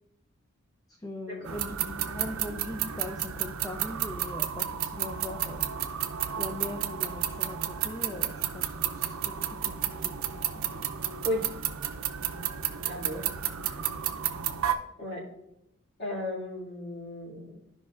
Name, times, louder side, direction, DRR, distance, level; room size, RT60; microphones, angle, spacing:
voice 1, 1.0-5.6 6.3-10.2 10.5-10.7 13.2-13.3, left 1 dB, 15° left, 3 dB, 0.4 m, -40 dB
sound 1, 1.5-14.7, right 10 dB, 75° right, 0.6 m, -32 dB
voice 2, 12.9-13.3 13.6-13.8 15.0-15.3 16.0-17.6, left 1 dB, 50° left, -4 dB, 2.1 m, -35 dB
13.5 x 5.2 x 2.4 m, 0.83 s
head